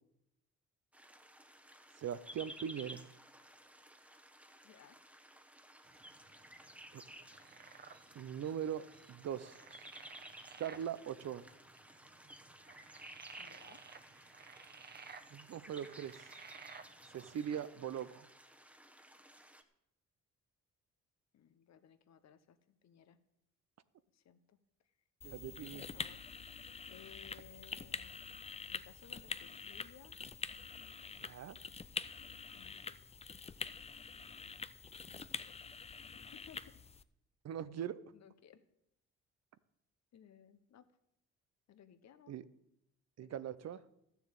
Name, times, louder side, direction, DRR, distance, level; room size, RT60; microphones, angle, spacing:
sound 1, 0.9-19.6, right 1 dB, 5° right, 1.2 m, -56 dB
voice 1, 2.0-3.1 6.9-7.0 8.1-9.8 10.6-11.5 15.3-16.3 17.1-18.3 25.2-25.8 31.2-31.6 37.4-38.0 42.3-42.4 43.2-43.8, right 9 dB, 60° right, 15 dB, 0.8 m, -41 dB
voice 2, 4.6-5.0 13.4-13.8 21.3-23.2 24.1-24.6 24.8-24.9 25.5-28.4 28.7-30.2 32.5-33.0 35.1-35.6 36.1-36.8 38.1-38.6 40.1-40.9 41.7-42.4 43.2-43.4, left 8 dB, 60° left, 11 dB, 1.1 m, -61 dB
sound 2, 5.9-17.6, right 5 dB, 35° right, 1.0 m, -57 dB
sound 3, 25.2-37.0, left 5 dB, 20° left, 0.5 m, -46 dB
13.0 x 7.1 x 8.8 m, 0.82 s
cardioid pair, 90°, 30 cm